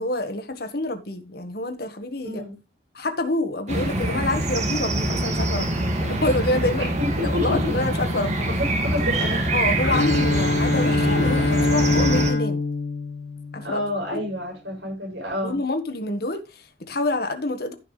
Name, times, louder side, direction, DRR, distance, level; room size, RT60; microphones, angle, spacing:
voice 1, 0.0-2.5 2.9-5.7 6.0-8.4 9.5-12.6 13.5-13.8 14.1-14.2 15.4-17.7, left 2 dB, 60° left, 1.6 m, -27 dB
voice 2, 2.2-2.6 6.8-7.7 8.6-9.6 13.6-15.6, left 2 dB, 75° right, 6.9 m, -29 dB
sound 1, 3.7-12.3, right 1 dB, 40° right, 2.5 m, -25 dB
Bowed string instrument, 9.8-13.9, left 3 dB, 90° left, 2.0 m, -23 dB
15.0 x 5.8 x 3.3 m
head